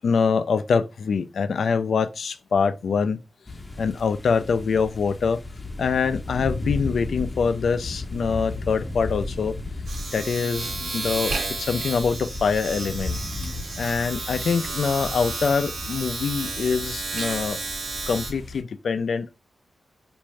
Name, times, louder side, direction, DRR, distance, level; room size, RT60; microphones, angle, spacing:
voice 1, 0.0-3.2 3.8-5.4 5.8-9.5 10.1-13.1 13.4-17.6 18.1-19.3, left 5 dB, 75° left, 0.3 m, -24 dB
sound 1, 3.5-18.6, left 2 dB, 25° left, 0.7 m, -35 dB
Domestic sounds home sounds, 6.6-6.7 7.0-18.3, right 3 dB, 90° right, 1.2 m, -32 dB
4.5 x 2.5 x 3.1 m
cardioid pair, 60°, 0 cm